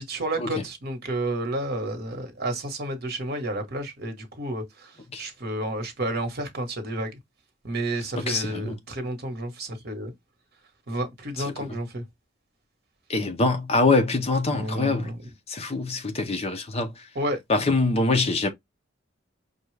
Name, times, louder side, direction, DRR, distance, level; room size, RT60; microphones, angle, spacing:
voice 1, 0.0-4.9 5.2-7.1 7.6-10.1 10.9-12.0 14.5-15.2 17.1-17.4, right 1 dB, 55° right, 1.2 m, -31 dB
voice 2, 8.1-8.8 11.4-11.8 13.1-15.1 15.5-17.0 17.5-18.5, left 3 dB, 30° left, 0.6 m, -24 dB
5.4 x 2.3 x 3.2 m
head